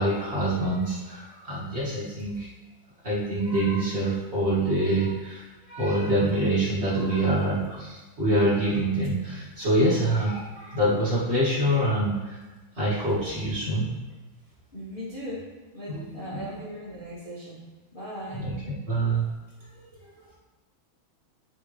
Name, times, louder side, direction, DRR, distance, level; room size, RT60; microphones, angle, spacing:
voice 1, 0.0-2.5 3.0-12.4 12.8-13.9 15.9-16.0 16.3-16.5 18.4-18.5 18.9-19.2 19.7-19.8, right 1 dB, 30° right, -9 dB, 2.1 m, -25 dB
voice 2, 14.7-17.7 17.9-18.5, equal, 35° left, -8 dB, 1.0 m, -38 dB
9.5 x 3.8 x 3.2 m, 1.2 s
omnidirectional pair, 2.3 m